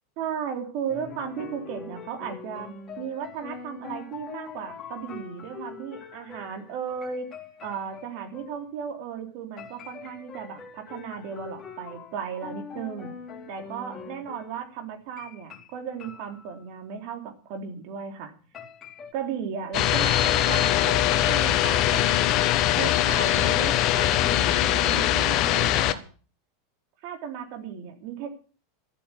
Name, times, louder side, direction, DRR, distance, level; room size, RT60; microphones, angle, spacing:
voice 1, 0.2-2.7 3.0-7.3 7.6-13.1 13.5-18.3 19.1-22.2 22.8-26.0 27.0-28.4, right 7 dB, 55° right, 5 dB, 3.6 m, -35 dB
sound 1, 0.9-8.7 9.6-14.6 15.2-16.9 18.5-19.1, left 6 dB, 25° left, 3.6 m, -43 dB
sound 2, 19.7-25.9, left 13 dB, 45° left, 1.1 m, -22 dB
13.0 x 8.7 x 8.3 m, 0.39 s
figure-of-eight pair, 85°, 0 cm